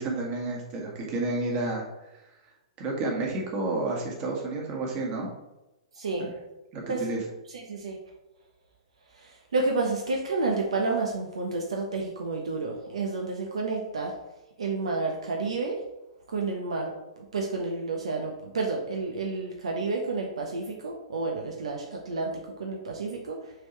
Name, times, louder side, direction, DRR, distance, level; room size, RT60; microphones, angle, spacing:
voice 1, 0.0-1.9 2.8-5.3 6.2-6.3 6.7-7.2, right 2 dB, 40° right, -1 dB, 1.9 m, -30 dB
voice 2, 6.0-6.3 6.9-7.0 7.5-8.0 9.1-14.1 14.6-15.8 16.3-23.5, right 3 dB, 80° right, 1 dB, 0.9 m, -30 dB
6.1 x 4.9 x 3.3 m, 0.98 s
hypercardioid pair, 120°, 3 cm